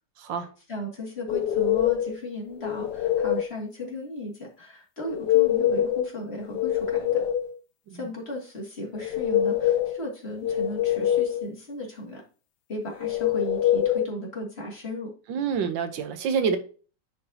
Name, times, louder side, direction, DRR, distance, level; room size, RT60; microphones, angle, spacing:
voice 1, 0.3-7.2 7.9-12.2 12.7-15.1, left 1 dB, 35° left, 2.5 m, -36 dB
sound 1, 1.3-2.1 2.6-3.5 5.1-6.1 6.4-7.5 8.9-10.0 10.4-11.4 13.0-14.0, left 11 dB, 75° left, 1.3 m, -24 dB
voice 2, 15.3-16.6, right 6 dB, 90° right, 1.6 m, -27 dB
9.9 x 4.7 x 2.8 m
omnidirectional pair, 2.0 m